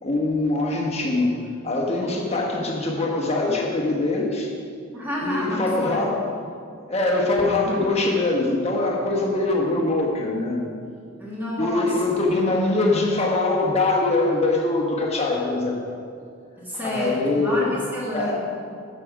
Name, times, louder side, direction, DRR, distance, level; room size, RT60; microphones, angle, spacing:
voice 1, 0.0-1.4 1.6-4.5 5.2-6.2 6.8-10.6 11.6-15.8 16.7-17.7 18.1-18.4, left 2 dB, 30° left, -1 dB, 1.3 m, -23 dB
voice 2, 4.9-6.1 11.2-11.9 16.6-18.4, equal, 10° right, -6 dB, 2.1 m, -29 dB
9.8 x 7.7 x 5.0 m, 2.3 s
head